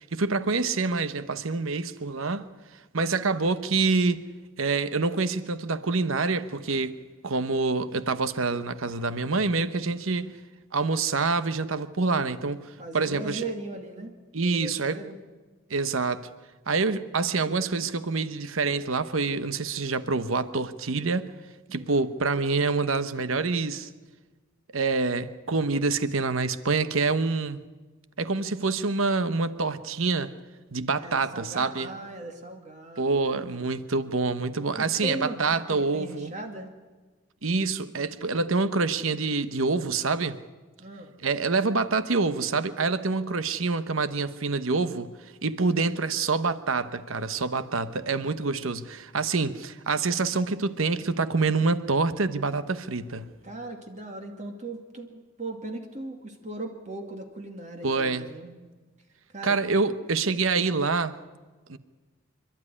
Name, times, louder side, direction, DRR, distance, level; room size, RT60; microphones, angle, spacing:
voice 1, 0.0-2.5 2.9-4.2 4.6-7.0 7.2-10.3 10.7-12.7 12.9-13.4 14.3-15.0 15.7-16.3 16.7-21.3 21.7-23.9 24.7-27.6 28.2-30.3 30.7-31.9 33.0-36.3 37.4-40.4 41.2-45.2 45.4-53.3 57.8-58.3 59.4-61.1 61.7-61.8, right 4 dB, 80° right, 12 dB, 1.0 m, -26 dB
voice 2, 12.8-15.2 21.7-22.1 31.0-33.8 34.8-36.7 40.8-41.1 53.4-58.6 59.3-59.6, right 2 dB, 35° right, 3 dB, 2.4 m, -38 dB
27.5 x 12.5 x 9.8 m, 1.3 s
head